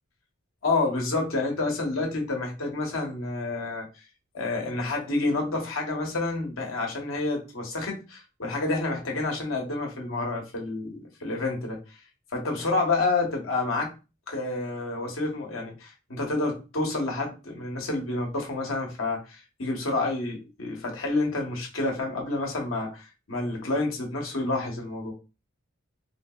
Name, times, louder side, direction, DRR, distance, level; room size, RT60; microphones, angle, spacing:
voice 1, 0.6-3.8 4.3-11.8 12.3-13.9 14.3-25.1, left 2 dB, 80° left, 0 dB, 1.1 m, -29 dB
3.4 x 2.8 x 2.3 m, 0.30 s
head